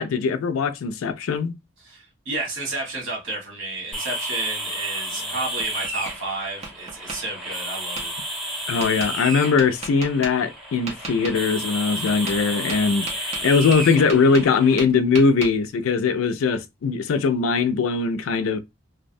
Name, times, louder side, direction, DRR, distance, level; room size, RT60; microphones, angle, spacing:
voice 1, 0.0-1.5 8.7-18.6, left 5 dB, 85° left, 0.4 m, -21 dB
voice 2, 1.8-8.1, right 2 dB, 70° right, 1.3 m, -31 dB
sound 1, 3.9-14.7, right 1 dB, ahead, 0.8 m, -32 dB
Tap, 5.1-6.1 6.6-7.2 8.0-8.1 8.8-9.1 9.6-10.3 10.9-11.4 12.1-12.4 12.7-14.5 14.8-15.5, right 3 dB, 30° right, 0.7 m, -34 dB
2.6 x 2.1 x 2.5 m
head